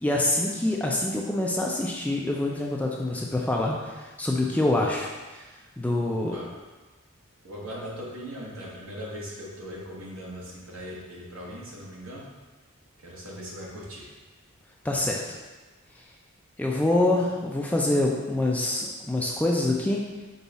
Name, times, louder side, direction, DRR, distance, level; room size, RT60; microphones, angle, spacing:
voice 1, 0.0-5.5 5.8-6.4 14.8-15.2 16.0-16.1 16.6-20.0, left 1 dB, 5° left, -2 dB, 0.3 m, -26 dB
voice 2, 6.1-6.5 7.4-12.3 13.0-14.1, equal, 65° right, -4 dB, 1.2 m, -39 dB
5.3 x 2.4 x 4.0 m, 1.2 s
head